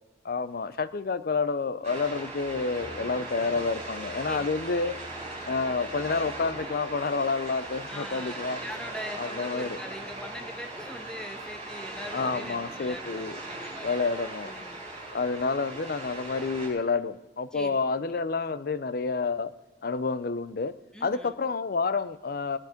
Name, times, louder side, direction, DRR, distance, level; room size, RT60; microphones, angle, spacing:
voice 1, 0.2-5.0 5.5-8.6 9.2-9.8 12.1-13.4 13.8-14.6 15.1-19.5 19.8-20.7 21.0-22.6, left 4 dB, 50° left, 15 dB, 0.5 m, -29 dB
sound 1, 1.8-16.7, right 2 dB, 35° right, 6.5 m, -39 dB
voice 2, 7.9-14.0 14.4-14.8 17.5-18.1 20.9-21.4, equal, 5° left, 5 dB, 1.1 m, -42 dB
19.0 x 10.5 x 5.1 m, 1.1 s
head